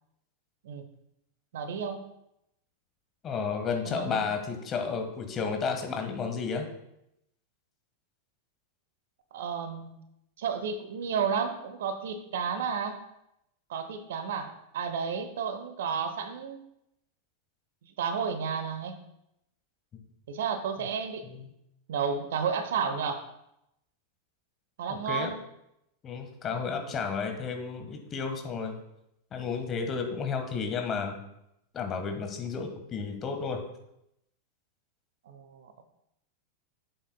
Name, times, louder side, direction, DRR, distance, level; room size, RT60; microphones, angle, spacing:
voice 1, 1.5-2.1 3.8-4.3 9.3-10.0 10.4-13.0 13.7-16.6 17.8-19.0 20.3-21.4 21.9-23.3 24.8-25.4 26.9-27.1 35.2-35.8, right 6 dB, 60° right, 9 dB, 0.8 m, -32 dB
voice 2, 3.2-6.7 20.8-20.9 21.3-21.5 25.1-25.3 26.0-28.7 29.3-31.2 31.7-33.6, left 5 dB, 25° left, 5 dB, 1.3 m, -32 dB
11.0 x 7.8 x 2.2 m, 0.82 s
figure-of-eight pair, 90°, 0 cm